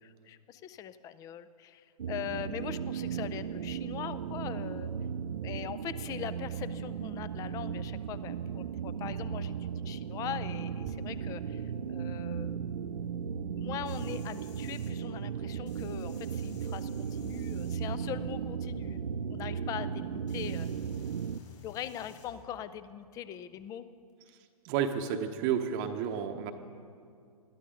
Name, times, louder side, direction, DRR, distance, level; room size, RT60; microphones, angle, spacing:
voice 1, 0.0-4.9 5.4-12.6 13.5-20.7 21.6-23.9, left 10 dB, 15° left, 15 dB, 0.4 m, -41 dB
sound 1, 2.0-21.4, right 7 dB, 75° right, 0.5 m, -36 dB
sound 2, 13.8-14.9 15.7-18.6 19.6-19.7 20.3-22.4 24.1-24.2, left 7 dB, 50° left, 4.6 m, -57 dB
voice 2, 24.6-26.5, right 8 dB, 35° right, 6 dB, 0.9 m, -31 dB
21.0 x 13.0 x 3.8 m, 2.3 s
figure-of-eight pair, 120°, 20 cm